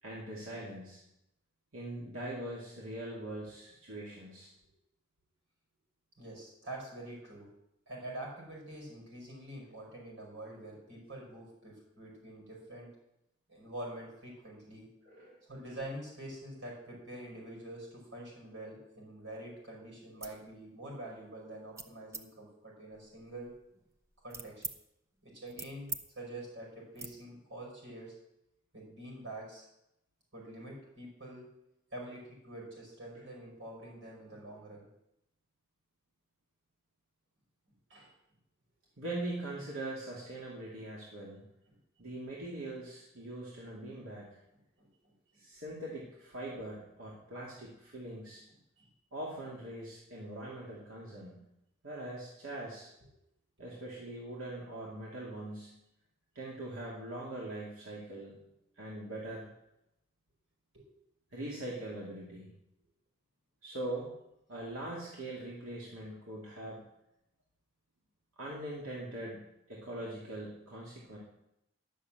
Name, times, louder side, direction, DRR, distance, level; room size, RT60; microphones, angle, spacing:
voice 1, 0.0-1.0 1.7-4.5 15.0-15.4 39.0-41.4 42.0-44.4 45.4-48.4 49.1-51.4 51.8-52.9 53.6-55.8 56.4-58.4 58.8-59.5 61.3-62.5 63.6-64.1 64.5-66.9 68.4-71.2, right 1 dB, 90° right, -5 dB, 2.3 m, -42 dB
voice 2, 6.2-7.5 7.9-12.9 13.5-14.9 15.5-23.5 24.2-24.6 25.2-25.9 26.2-28.1 28.7-29.7 30.3-31.5 31.9-34.9 37.9-38.1 41.7-42.1 44.8-45.4 48.8-48.9 53.6-53.7 60.7-60.8, right 1 dB, 65° right, -2 dB, 5.7 m, -46 dB
sound 1, 20.1-20.4 20.9-21.2 21.8-22.2 22.9-24.8 25.2-26.0 26.3-26.5 26.9-27.1, right 4 dB, 15° right, 0.5 m, -44 dB
11.5 x 6.5 x 7.6 m, 0.85 s
head